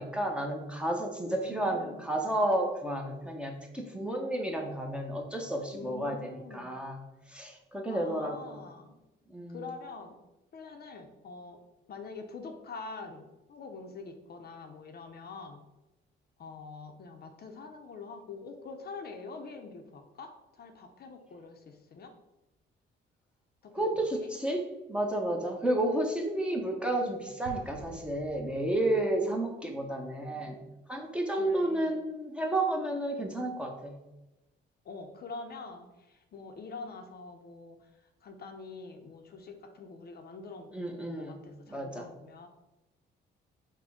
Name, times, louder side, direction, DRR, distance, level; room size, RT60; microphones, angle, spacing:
voice 1, 0.0-7.0 7.3-8.4 9.3-9.6 23.7-30.6 30.9-33.9 40.7-41.4 41.7-42.1, right 1 dB, 5° right, 1 dB, 0.8 m, -31 dB
voice 2, 1.2-2.1 5.7-6.7 7.9-9.0 9.5-10.2 10.5-11.6 11.9-15.6 16.4-22.1 23.6-24.3 30.3-30.6 31.4-32.0 34.8-37.8 38.2-42.5, left 4 dB, 50° left, 4 dB, 0.6 m, -45 dB
Explosion, 27.4-29.2, right 2 dB, 90° right, 0.9 m, -47 dB
4.9 x 2.2 x 4.9 m, 1.0 s
cardioid pair, 90°, 20 cm